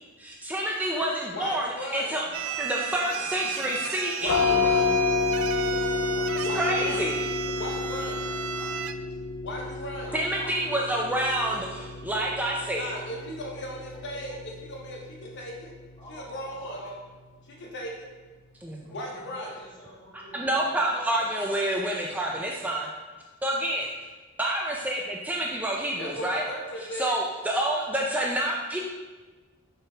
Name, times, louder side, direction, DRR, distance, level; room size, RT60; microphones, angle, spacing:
voice 1, 0.2-2.2 2.6-4.5 6.6-7.2 10.1-12.9 18.6-18.9 20.3-22.9 23.4-23.9 24.4-26.4 26.9-28.8, right 1 dB, 10° right, -2 dB, 0.4 m, -28 dB
voice 2, 1.3-2.3 4.2-5.0 6.4-7.2 7.6-8.3 9.4-10.2 12.8-15.7 16.1-16.8 17.5-18.1 18.9-19.6 26.0-27.2, equal, 60° left, 0 dB, 0.9 m, -37 dB
sound 1, 2.3-8.9, right 8 dB, 75° right, 0.3 m, -33 dB
voice 3, 2.9-3.5 4.3-6.7 7.6-9.0 10.0-12.5 13.1-13.3 13.9-14.4 16.0-17.0 18.8-21.4, equal, 20° left, -5 dB, 1.6 m, -47 dB
Deep Bell, 4.2-15.8, left 4 dB, 80° left, 0.4 m, -30 dB
6.3 x 4.0 x 3.8 m, 1.3 s
head